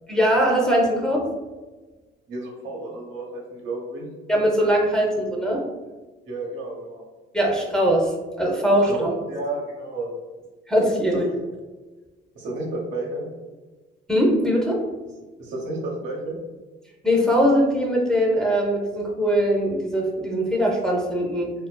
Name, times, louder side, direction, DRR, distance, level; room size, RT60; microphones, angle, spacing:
voice 1, 0.1-1.3 4.3-5.6 7.3-8.1 8.4-9.1 10.7-11.3 14.1-14.8 17.0-21.5, equal, 5° left, -2 dB, 0.5 m, -21 dB
voice 2, 2.3-4.0 6.2-7.0 8.9-10.1 11.1-11.4 12.3-13.3 15.4-16.4, right 2 dB, 75° right, -2 dB, 0.8 m, -31 dB
2.5 x 2.2 x 2.2 m, 1.2 s
cardioid pair, 90°, 20 cm